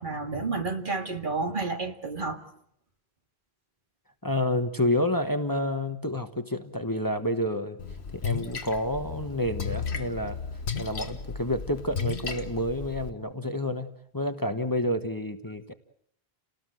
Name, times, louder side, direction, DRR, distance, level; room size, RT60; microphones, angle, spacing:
voice 1, 0.0-2.4, right 3 dB, 55° right, 2.2 m, -30 dB
voice 2, 4.2-7.8 8.1-10.4 10.8-15.7, left 1 dB, 20° left, 1.2 m, -29 dB
Splash splatter, 7.8-13.1, left 6 dB, 85° left, 1.7 m, -34 dB
29.5 x 19.0 x 7.8 m
omnidirectional pair, 1.1 m